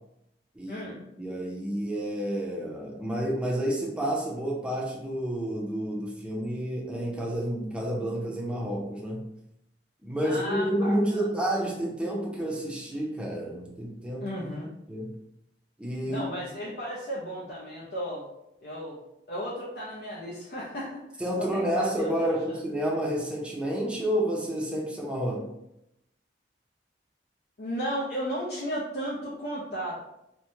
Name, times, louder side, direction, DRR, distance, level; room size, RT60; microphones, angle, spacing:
voice 1, 0.7-1.0 10.2-10.6 11.1-11.3 14.2-14.7 16.0-18.3 18.6-19.0 19.3-21.0 21.4-22.3 27.6-30.0, equal, 60° left, -7 dB, 0.6 m, -34 dB
voice 2, 1.2-9.2 10.0-14.3 14.9-15.1 15.8-16.2 21.2-25.5, right 1 dB, 5° right, -2 dB, 0.4 m, -30 dB
3.0 x 2.1 x 2.7 m, 0.84 s
head